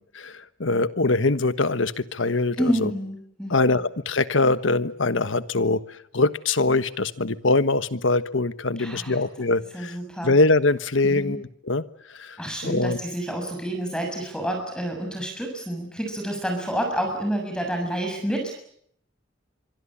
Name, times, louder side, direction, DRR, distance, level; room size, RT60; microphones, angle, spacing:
voice 1, 0.2-2.9 3.5-5.8 6.1-10.0 10.2-11.8 12.1-13.0, left 3 dB, 80° left, 13 dB, 1.3 m, -23 dB
voice 2, 2.6-3.6 8.8-9.2 9.7-10.3 11.0-11.4 12.4-18.5, equal, 5° left, 3 dB, 6.6 m, -29 dB
25.0 x 25.0 x 8.7 m, 0.68 s
head